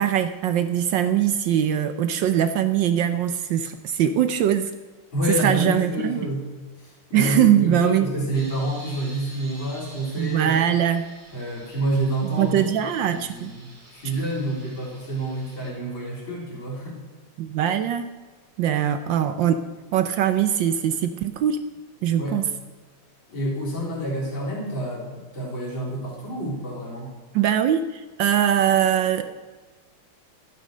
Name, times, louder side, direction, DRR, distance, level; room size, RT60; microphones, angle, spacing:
voice 1, 0.0-4.7 5.4-6.3 7.1-8.1 10.2-11.0 12.4-13.5 17.4-18.1 18.6-19.6 19.9-21.6 22.0-22.4 27.3-29.3, right 10 dB, 70° right, 9 dB, 1.2 m, -22 dB
voice 2, 5.1-6.5 6.8-10.5 11.3-12.6 13.1-17.0 22.2-22.4 23.3-27.1, right 1 dB, 60° left, -5 dB, 4.5 m, -28 dB
sound 1, 8.3-15.7, right 1 dB, 20° right, 2.4 m, -48 dB
12.5 x 9.3 x 6.5 m, 1.3 s
omnidirectional pair, 2.4 m